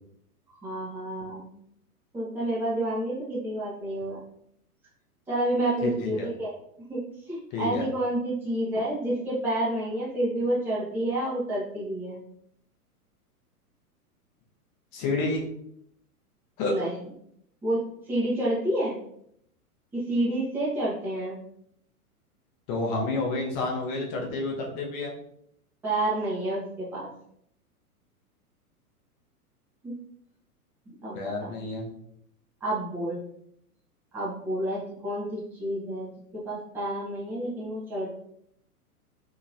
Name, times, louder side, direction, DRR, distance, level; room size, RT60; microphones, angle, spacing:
voice 1, 0.6-1.5 2.1-4.2 5.3-6.5 6.9-12.2 16.6-16.9 17.6-19.0 19.9-21.4 25.8-27.1 29.8-29.9 30.9-31.5 32.6-33.2 34.1-38.2, right 1 dB, 5° right, -9 dB, 0.7 m, -29 dB
voice 2, 5.8-6.3 7.5-7.9 14.9-15.4 16.6-16.7 22.7-25.1 31.1-31.9, left 3 dB, 30° left, -1 dB, 0.7 m, -29 dB
2.9 x 2.8 x 2.4 m, 0.71 s
figure-of-eight pair, 105°, 45 cm